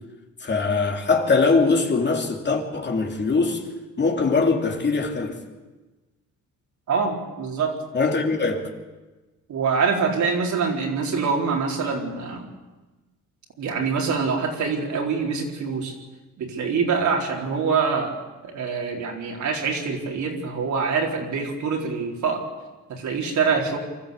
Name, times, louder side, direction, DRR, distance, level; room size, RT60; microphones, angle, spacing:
voice 1, 0.4-3.7 4.0-5.4 7.9-8.7, left 4 dB, 35° left, 2.9 m, -22 dB
voice 2, 6.9-7.7 9.5-12.5 13.6-15.9 16.4-18.1 18.4-22.4 22.9-23.8, right 5 dB, 70° right, 4.3 m, -25 dB
24.0 x 13.5 x 8.4 m
cardioid pair, 90°, 30 cm